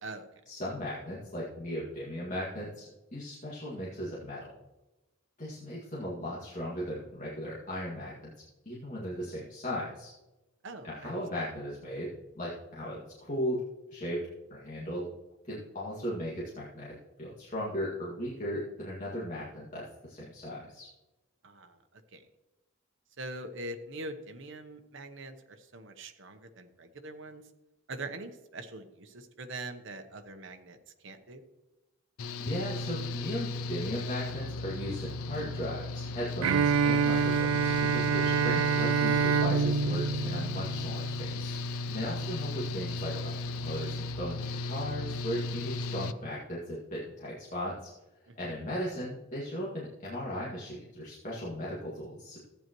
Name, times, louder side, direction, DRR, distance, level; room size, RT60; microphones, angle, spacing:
voice 1, 0.5-4.5 5.4-8.3 8.7-10.1 10.8-13.6 13.9-14.2 14.5-15.0 15.5-20.9 32.4-41.6 41.9-47.9 48.4-52.4, equal, 35° left, -7 dB, 2.1 m, -37 dB
voice 2, 10.6-11.1 21.4-22.2 23.2-27.4 27.9-30.8 31.0-31.4 38.0-38.2 42.0-42.2 48.3-48.6, right 2 dB, 60° right, 6 dB, 1.0 m, -43 dB
Engine / Mechanical fan, 32.2-46.1, left 2 dB, 90° left, 0.5 m, -36 dB
Bowed string instrument, 36.4-41.3, right 6 dB, 80° right, 0.4 m, -27 dB
14.5 x 9.0 x 3.1 m, 1.0 s
head